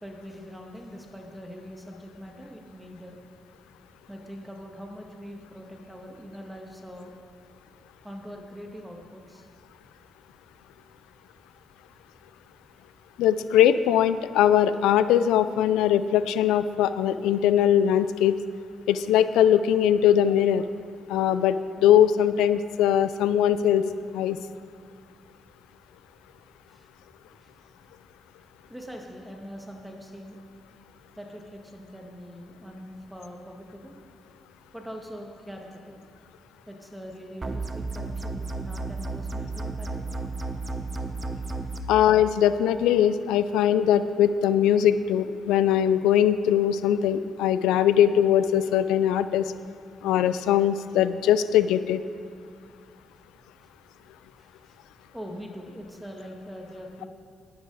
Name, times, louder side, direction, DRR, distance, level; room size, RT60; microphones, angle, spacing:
voice 1, 0.0-3.2 4.1-7.1 8.0-9.5 26.7-26.9 27.4-27.5 28.7-30.4 31.2-34.0 34.7-36.0 36.7-40.2 41.7-41.9 54.3-54.8 55.1-57.1, equal, 5° right, 1 dB, 1.7 m, -42 dB
voice 2, 13.2-18.3 18.9-20.6 21.1-23.9 24.1-24.4 41.9-49.5 50.0-52.0, left 10 dB, 90° left, 13 dB, 0.4 m, -21 dB
sound 1, 37.4-41.8, right 3 dB, 30° right, 0.8 m, -33 dB
11.0 x 10.0 x 4.0 m, 2.5 s
supercardioid pair, 70°, 0 cm